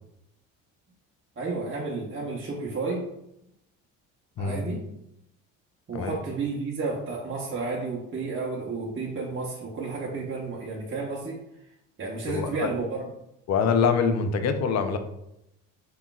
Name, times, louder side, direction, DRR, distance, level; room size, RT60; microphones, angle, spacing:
voice 1, 1.4-3.1 4.4-4.8 5.9-11.4 12.0-13.0, right 3 dB, 30° right, -4 dB, 1.1 m, -31 dB
voice 2, 12.3-12.7 13.5-15.0, left 6 dB, 40° left, 8 dB, 0.6 m, -24 dB
5.7 x 3.6 x 2.4 m, 0.82 s
hypercardioid pair, 65°, 40 cm